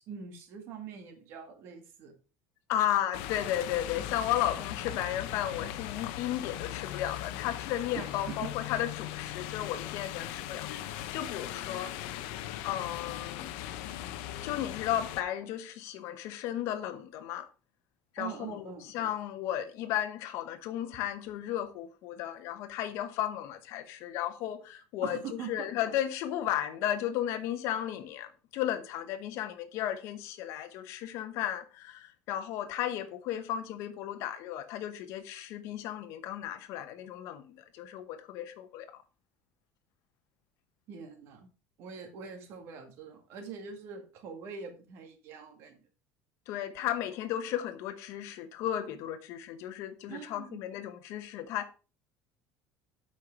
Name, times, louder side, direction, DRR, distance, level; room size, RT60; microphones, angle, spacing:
voice 1, 0.0-2.1 8.0-8.4 18.2-18.9 25.0-25.7 40.9-41.5 41.8-45.8 50.1-50.6, right 6 dB, 45° right, 1.9 m, -43 dB
voice 2, 2.7-11.9 12.6-13.5 14.4-17.5 18.1-38.9 46.5-51.7, left 11 dB, 55° left, 1.0 m, -34 dB
sound 1, 3.1-15.2, left 13 dB, 85° left, 0.8 m, -39 dB
8.0 x 5.7 x 4.7 m
cardioid pair, 180°, 6 cm